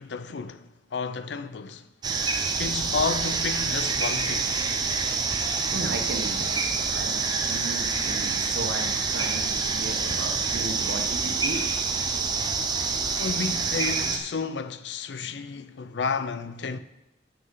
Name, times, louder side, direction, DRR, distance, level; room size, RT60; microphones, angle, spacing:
voice 1, 0.0-1.9 2.6-4.5 12.7-16.8, left 5 dB, 80° left, 0.5 m, -32 dB
sound 1, 2.0-14.2, right 4 dB, 25° right, 0.7 m, -27 dB
voice 2, 5.7-11.6, right 2 dB, 80° right, 1.3 m, -35 dB
7.7 x 6.4 x 5.6 m
head